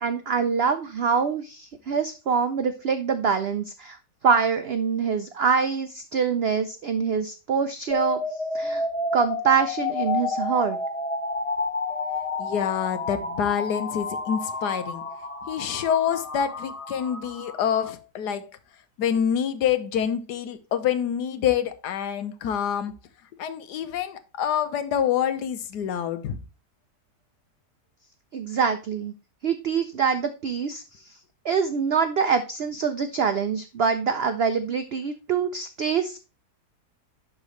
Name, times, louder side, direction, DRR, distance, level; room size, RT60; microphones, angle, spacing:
voice 1, 0.0-4.0 4.2-8.8 9.1-10.8 28.3-29.1 29.4-31.1 31.4-36.2, right 6 dB, 85° right, 0.5 m, -25 dB
sound 1, 7.9-17.9, left 3 dB, 40° left, 0.5 m, -30 dB
voice 2, 12.4-15.1 15.4-18.6 19.0-22.9 23.4-26.4, left 8 dB, 80° left, 1.3 m, -26 dB
11.5 x 3.8 x 3.1 m
omnidirectional pair, 1.8 m